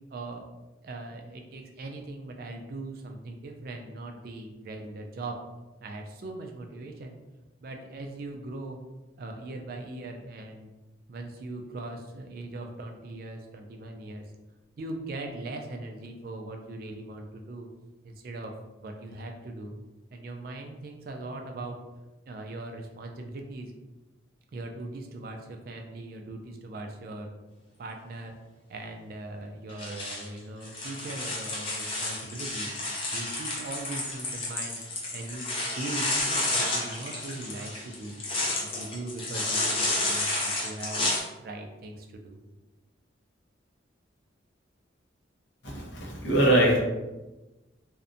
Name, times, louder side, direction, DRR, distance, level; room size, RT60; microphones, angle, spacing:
voice 1, 0.1-0.5 0.8-5.4 5.8-7.2 7.6-8.8 9.2-10.7 11.1-14.3 14.8-17.7 18.0-18.5 18.8-19.7 20.1-21.8 22.3-23.7 24.5-27.3 27.8-28.3 28.7-32.8 33.1-34.8 35.1-35.5 35.7-38.2 38.6-41.1 41.4-42.4, right 2 dB, 50° right, 3 dB, 0.3 m, -40 dB
sound 1, 29.7-41.2, left 2 dB, 30° left, 0.5 m, -31 dB
voice 2, 45.6-46.8, right 1 dB, 70° left, -2 dB, 0.7 m, -22 dB
2.5 x 2.1 x 2.5 m, 1.1 s
head